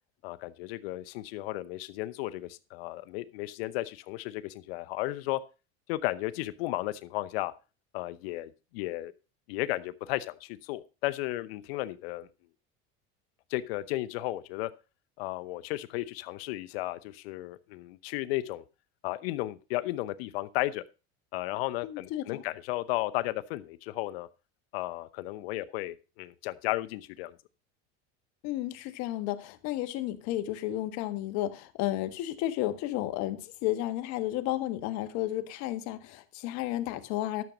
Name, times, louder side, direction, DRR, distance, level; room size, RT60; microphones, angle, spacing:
voice 1, 0.2-5.4 5.9-7.5 7.9-9.1 9.5-12.3 13.5-14.7 15.2-18.6 19.0-20.8 21.3-24.3 24.7-27.4, left 17 dB, 85° left, 0.9 m, -34 dB
voice 2, 21.8-22.4 28.4-37.4, left 14 dB, 65° left, 1.6 m, -32 dB
12.5 x 7.2 x 5.1 m
supercardioid pair, 110°, 29 cm